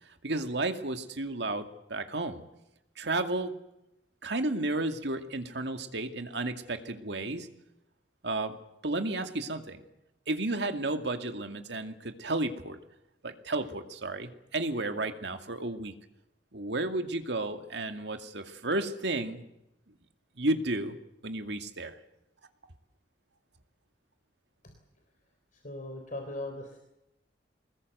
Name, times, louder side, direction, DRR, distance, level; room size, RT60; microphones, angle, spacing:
voice 1, 0.2-2.4 3.0-3.5 4.2-7.5 8.2-8.6 8.8-9.8 10.3-12.8 13.2-15.9 16.5-19.4 20.4-21.0 21.2-22.0, right 2 dB, 65° right, 7 dB, 2.3 m, -32 dB
voice 2, 25.5-26.8, left 1 dB, 45° left, 4 dB, 3.8 m, -39 dB
24.5 x 20.5 x 8.0 m, 0.87 s
head